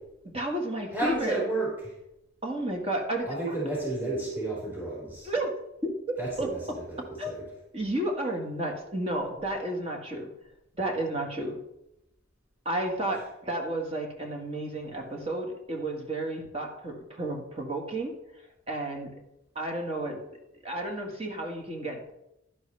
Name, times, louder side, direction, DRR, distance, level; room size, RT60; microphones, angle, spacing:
voice 1, 0.2-1.4 2.4-3.3 5.2-5.5 5.8-6.5 7.2-7.3 7.7-10.3 10.8-11.6 12.7-18.1 18.7-19.1 19.6-20.2 20.6-22.1, right 1 dB, 30° right, 1 dB, 1.8 m, -32 dB
voice 2, 0.9-1.9 3.3-5.3 6.2-6.6 6.9-7.0 7.2-7.4, right 2 dB, 10° right, -8 dB, 4.6 m, -31 dB
11.5 x 10.5 x 3.4 m, 0.85 s
head